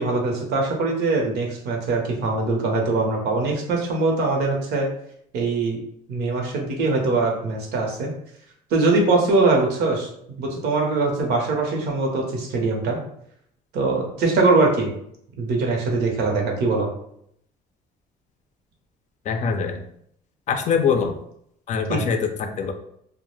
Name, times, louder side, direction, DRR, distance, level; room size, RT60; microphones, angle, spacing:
voice 1, 0.0-4.9 5.3-5.8 6.1-8.1 8.7-10.1 10.4-13.0 13.7-14.9 15.4-16.9 21.9-22.0, right 3 dB, 75° right, 1 dB, 0.8 m, -22 dB
voice 2, 19.3-19.8 20.5-21.1 21.7-22.7, left 6 dB, 45° left, 6 dB, 0.4 m, -23 dB
2.2 x 2.1 x 3.0 m, 0.71 s
cardioid pair, 110°, 17 cm